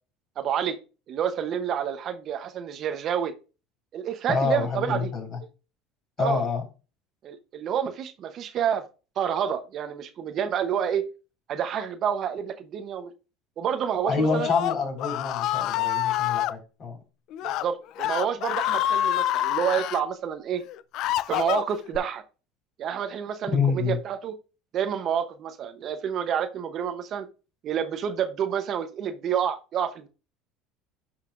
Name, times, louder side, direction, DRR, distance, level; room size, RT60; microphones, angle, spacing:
voice 1, 0.4-0.8 1.1-3.3 3.9-5.1 6.2-6.4 7.2-8.9 9.2-11.1 11.5-13.1 13.6-14.5 17.4-20.6 21.3-22.2 22.8-24.4 24.7-27.3 27.6-30.1, right 8 dB, 45° right, 8 dB, 0.8 m, -28 dB
voice 2, 4.3-5.4 6.2-6.6 14.1-17.0 23.5-24.0, left 5 dB, 40° left, 2 dB, 4.5 m, -27 dB
Screaming, 14.1-16.5 17.3-17.6 18.0-20.0 20.6-22.0, left 13 dB, 55° left, 0.4 m, -27 dB
11.0 x 5.7 x 2.5 m, 0.32 s
supercardioid pair, 130°, 0 cm